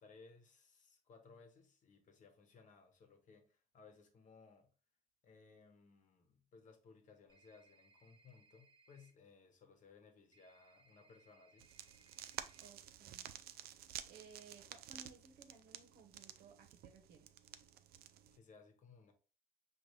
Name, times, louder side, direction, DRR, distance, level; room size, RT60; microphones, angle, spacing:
voice 1, 0.0-4.7 5.2-11.7 18.3-19.1, left 4 dB, 45° left, 1.0 m, -62 dB
sound 1, 7.3-9.1 10.3-12.7, right 3 dB, 30° right, 1.3 m, -69 dB
sound 2, 11.6-18.4, right 11 dB, 65° right, 0.4 m, -52 dB
voice 2, 12.6-13.3 14.1-17.3, right 4 dB, 80° right, 1.0 m, -60 dB
5.2 x 2.5 x 3.1 m
cardioid pair, 110°, 17 cm